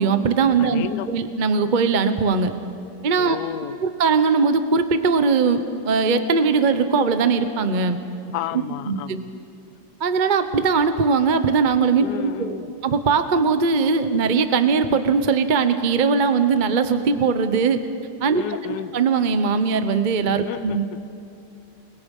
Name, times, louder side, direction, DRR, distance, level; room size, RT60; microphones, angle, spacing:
voice 1, 0.0-2.5 3.0-3.4 3.8-8.0 8.5-9.2 10.0-17.8 18.2-18.4 18.7-20.9, right 5 dB, 35° right, 9 dB, 0.9 m, -20 dB
voice 2, 0.6-1.1 3.2-3.8 8.3-9.4 12.0-12.7 18.3-19.0 20.5-21.0, left 12 dB, 65° left, 14 dB, 1.1 m, -32 dB
29.0 x 21.0 x 5.5 m, 2.7 s
omnidirectional pair, 1.9 m